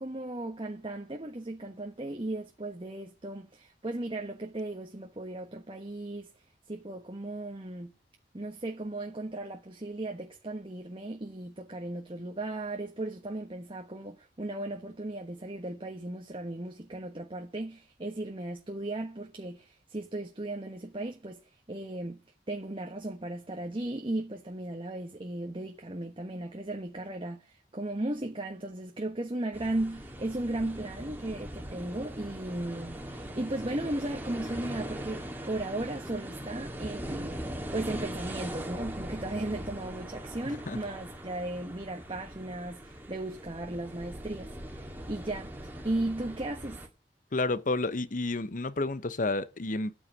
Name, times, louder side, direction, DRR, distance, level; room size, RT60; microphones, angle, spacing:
voice 1, 0.0-6.3 6.7-7.9 8.3-21.4 21.7-22.2 22.5-37.4 37.7-46.9, right 1 dB, 30° right, 1.2 m, -36 dB
sound 1, 29.5-46.9, right 1 dB, 10° right, 2.1 m, -41 dB
voice 2, 47.3-49.9, left 2 dB, 50° left, 0.8 m, -30 dB
8.8 x 8.5 x 9.2 m
head